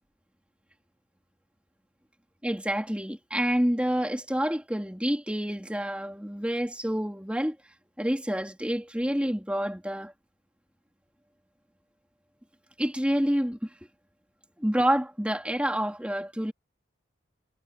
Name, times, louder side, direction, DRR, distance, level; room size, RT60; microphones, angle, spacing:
voice 1, 2.4-7.6 8.0-10.1 12.8-13.7 14.6-16.5, equal, 5° right, 2.9 m, -28 dB
head